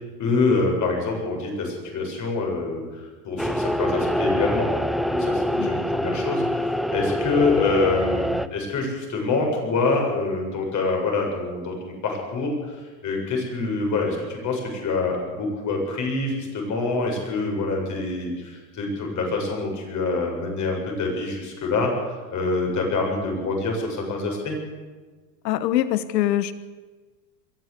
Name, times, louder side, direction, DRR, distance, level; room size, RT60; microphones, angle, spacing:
voice 1, 0.2-21.9 22.3-24.6, left 3 dB, 35° left, 1 dB, 7.5 m, -26 dB
sound 1, 3.4-8.5, equal, ahead, 0.5 m, -25 dB
voice 2, 25.4-26.5, left 13 dB, 80° left, 15 dB, 1.2 m, -23 dB
22.5 x 14.0 x 8.4 m, 1.4 s
supercardioid pair, 115°, 49 cm